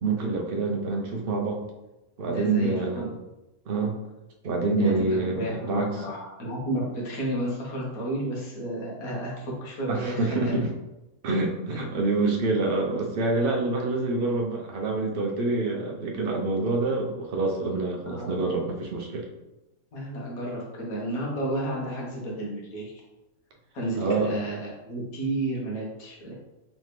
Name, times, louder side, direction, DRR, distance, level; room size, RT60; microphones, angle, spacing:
voice 1, 0.0-1.6 2.2-3.1 3.7-4.0 4.4-5.9 9.9-10.7 11.2-19.3 24.0-24.4, right 3 dB, 50° right, 0 dB, 0.7 m, -26 dB
voice 2, 2.2-3.1 4.8-10.6 18.1-18.4 19.9-22.9 23.7-26.4, right 1 dB, 75° left, -3 dB, 1.6 m, -32 dB
3.8 x 3.2 x 3.2 m, 1.0 s
omnidirectional pair, 1.6 m